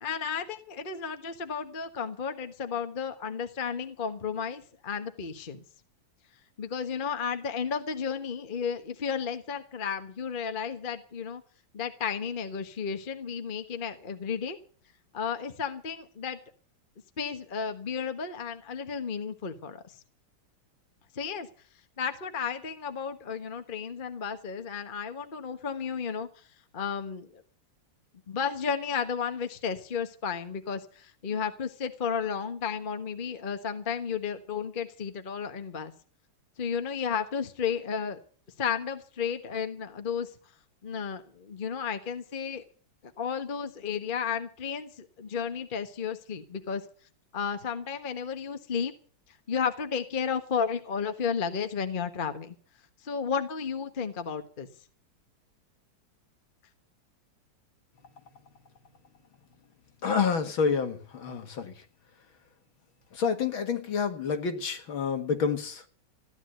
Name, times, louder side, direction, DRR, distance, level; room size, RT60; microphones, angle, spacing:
voice 1, 0.0-5.6 6.6-11.4 11.7-14.6 15.1-16.4 17.2-19.8 21.1-21.5 22.0-26.3 26.7-27.4 28.3-35.9 36.6-38.2 38.6-40.3 40.8-42.6 43.2-46.8 47.3-48.9 49.5-52.6 53.0-54.7, left 6 dB, 30° left, 7 dB, 1.1 m, -33 dB
voice 2, 60.0-61.7 63.1-65.9, left 6 dB, 65° left, 6 dB, 2.5 m, -28 dB
15.5 x 10.5 x 7.9 m, 0.43 s
omnidirectional pair, 2.4 m